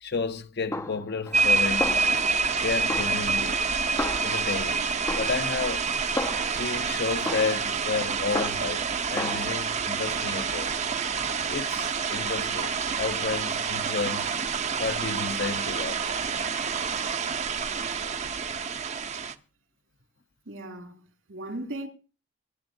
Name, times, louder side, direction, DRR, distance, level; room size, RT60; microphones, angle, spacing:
voice 1, 0.0-2.3 2.6-3.6 4.2-4.9 5.2-5.9 6.5-10.7 11.4-14.3 14.8-16.1, left 4 dB, 55° left, 0.8 m, -32 dB
Snare drum, 0.7-1.5 1.8-2.6 2.9-4.7 5.1-6.7 7.3-8.9 9.2-9.4, left 2 dB, 15° left, 0.5 m, -34 dB
sound 1, 1.3-19.3, right 5 dB, 35° right, 0.6 m, -28 dB
voice 2, 20.5-21.0 21.3-21.9, right 1 dB, 85° right, 3.0 m, -36 dB
22.0 x 10.5 x 2.7 m
head